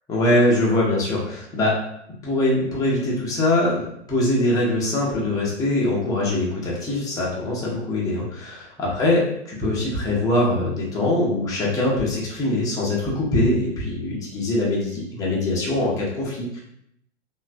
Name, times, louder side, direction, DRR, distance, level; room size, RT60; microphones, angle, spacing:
voice 1, 0.1-1.8 2.2-9.2 9.5-16.6, left 1 dB, 10° left, -4 dB, 0.5 m, -22 dB
3.0 x 2.2 x 2.4 m, 0.74 s
figure-of-eight pair, 105°, 36 cm